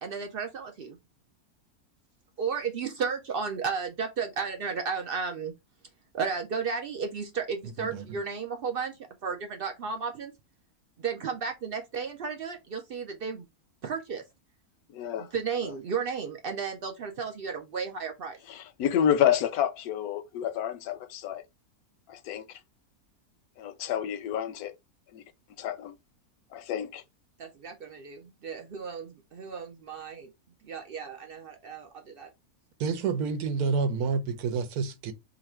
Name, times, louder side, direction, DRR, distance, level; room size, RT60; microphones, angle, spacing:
voice 1, 0.0-1.0 2.4-5.5 6.1-10.3 11.0-13.5 13.8-14.2 15.2-18.4 27.4-30.3 30.6-32.3, right 6 dB, 70° right, 0.5 m, -34 dB
voice 2, 14.9-15.3 18.5-21.4 22.1-22.5 23.6-24.7 25.1-25.2 25.6-25.9 26.5-27.0, left 10 dB, 85° left, 1.1 m, -29 dB
voice 3, 32.8-35.1, right 5 dB, 90° right, 1.2 m, -29 dB
2.9 x 2.5 x 4.2 m
omnidirectional pair, 1.6 m